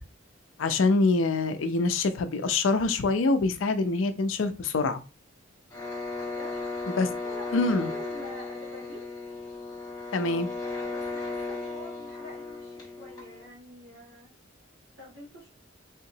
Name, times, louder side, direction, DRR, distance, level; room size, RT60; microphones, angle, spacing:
voice 1, 0.6-5.0 7.0-7.1 7.5-7.9 10.1-10.5, left 3 dB, 70° left, 0.4 m, -25 dB
sound 1, 5.7-13.5, left 3 dB, 20° left, 1.5 m, -36 dB
voice 2, 6.2-6.6 7.1-9.1 10.6-14.3 15.0-15.5, left 1 dB, 60° right, 2.1 m, -46 dB
3.6 x 2.9 x 2.7 m
head